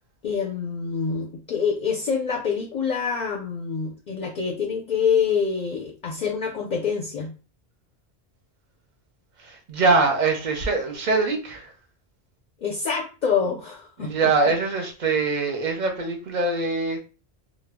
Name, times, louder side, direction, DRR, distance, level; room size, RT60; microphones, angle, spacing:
voice 1, 0.2-7.3 12.6-14.3, left 6 dB, 55° left, 0.5 m, -26 dB
voice 2, 9.4-11.7 14.0-17.0, right 3 dB, 50° right, 0.6 m, -23 dB
2.1 x 2.0 x 3.4 m
omnidirectional pair, 1.1 m